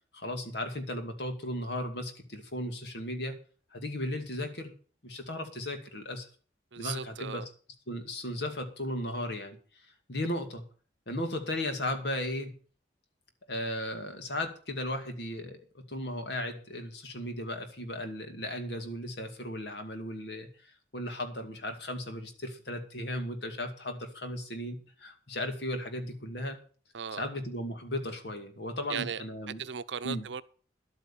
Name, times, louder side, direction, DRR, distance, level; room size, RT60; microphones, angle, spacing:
voice 1, 0.1-3.4 3.7-4.7 5.0-6.3 6.8-7.4 7.9-9.6 10.1-10.6 11.1-12.5 13.5-26.6 27.2-29.6 30.0-30.2, left 1 dB, 65° left, 2.4 m, -36 dB
voice 2, 6.7-7.5 26.9-27.2 28.9-29.2 29.6-30.4, right 7 dB, 85° right, 0.7 m, -37 dB
11.5 x 8.6 x 7.2 m
head